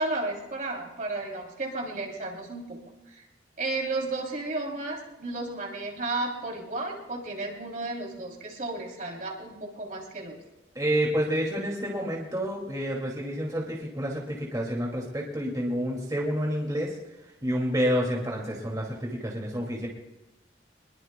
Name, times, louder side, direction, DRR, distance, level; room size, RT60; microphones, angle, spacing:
voice 1, 0.0-2.8 3.1-3.2 3.6-10.4, right 2 dB, 45° right, 0 dB, 3.3 m, -33 dB
voice 2, 10.7-16.9 17.4-19.9, equal, 20° right, -2 dB, 2.5 m, -29 dB
24.5 x 21.5 x 2.3 m, 0.99 s
head